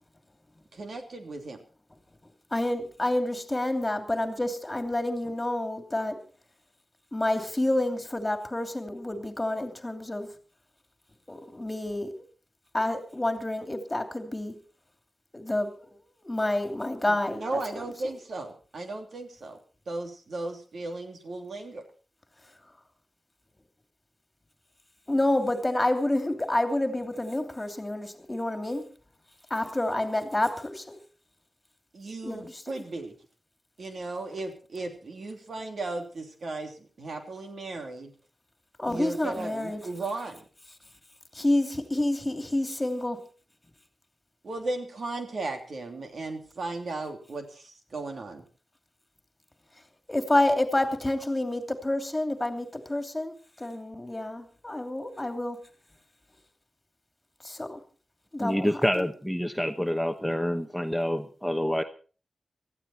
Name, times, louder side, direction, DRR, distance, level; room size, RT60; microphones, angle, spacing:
voice 1, 0.7-1.6 17.1-19.6 19.9-21.8 31.9-33.1 33.8-38.1 38.9-40.4 44.4-48.4, right 2 dB, 70° right, 5 dB, 3.1 m, -36 dB
voice 2, 2.5-6.2 7.1-10.3 11.3-12.2 12.7-14.6 15.3-16.0 16.2-17.6 18.0-18.1 25.1-28.8 29.5-31.0 32.2-32.8 38.8-39.8 41.3-43.2 50.1-55.6 57.4-57.8 58.3-59.1, left 1 dB, 20° left, 7 dB, 2.8 m, -28 dB
voice 3, 58.4-61.8, equal, ahead, 6 dB, 1.0 m, -27 dB
19.5 x 14.5 x 4.3 m, 0.38 s
wide cardioid pair, 90°, 0 cm